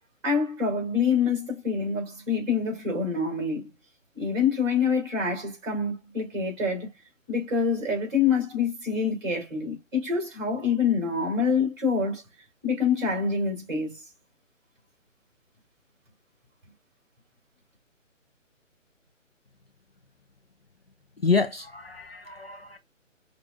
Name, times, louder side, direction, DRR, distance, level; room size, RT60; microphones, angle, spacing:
voice 1, 0.2-3.7 4.1-6.9 7.3-12.2 12.6-14.0, left 5 dB, 20° right, 3.3 m, -26 dB
voice 2, 21.2-22.8, left 4 dB, 50° left, 0.5 m, -27 dB
6.3 x 2.4 x 2.5 m
hypercardioid pair, 180°, 39 cm